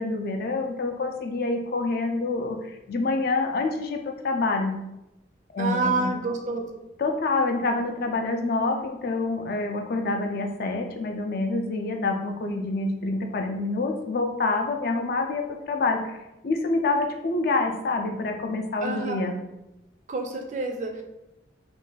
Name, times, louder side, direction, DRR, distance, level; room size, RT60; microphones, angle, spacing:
voice 1, 0.0-4.7 5.5-6.1 7.0-16.2 16.4-19.4, left 3 dB, 50° left, 4 dB, 0.3 m, -27 dB
voice 2, 5.6-6.7 18.8-19.2 20.1-21.0, right 3 dB, 40° right, 3 dB, 0.3 m, -28 dB
2.5 x 2.2 x 3.9 m, 0.93 s
head